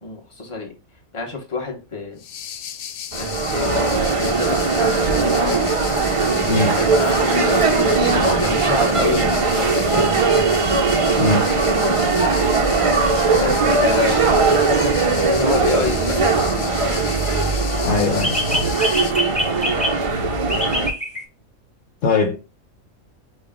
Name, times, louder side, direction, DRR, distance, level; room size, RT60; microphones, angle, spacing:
voice 1, 0.0-0.7 1.1-2.2 3.2-3.8 4.2-5.6 6.7-8.1 8.4-10.4 13.3-14.3 15.0-16.8, left 4 dB, 20° left, 1.2 m, -28 dB
sound 1, 2.2-19.1, left 9 dB, 90° left, 1.1 m, -34 dB
sound 2, 3.1-20.9, right 3 dB, 55° right, 0.3 m, -19 dB
voice 2, 6.5-6.8 11.2-11.5 17.8-18.4 22.0-22.4, left 3 dB, 60° left, 1.1 m, -20 dB
sound 3, 14.7-14.8 18.2-20.0 20.5-21.2, left 1 dB, 5° left, 0.9 m, -25 dB
5.4 x 2.5 x 3.6 m
omnidirectional pair, 1.5 m